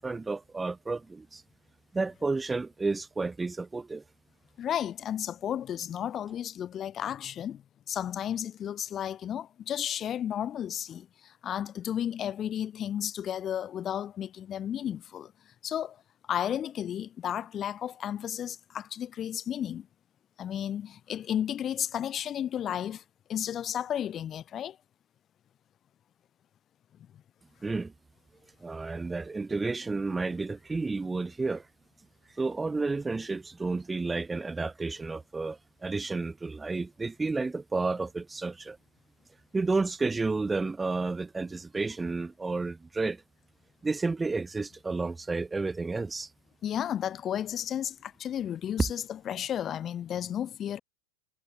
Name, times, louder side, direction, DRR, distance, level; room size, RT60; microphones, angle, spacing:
voice 1, 0.0-1.4 1.9-4.0 27.6-27.9 28.6-31.7 32.3-38.8 39.5-43.2 43.8-46.3, right 3 dB, 10° right, 1.7 m, -31 dB
voice 2, 4.6-15.3 15.6-16.0 16.3-19.9 20.4-23.0 23.3-24.8 46.6-50.8, left 10 dB, 25° left, 3.2 m, -33 dB
figure-of-eight pair, 90°, 0 cm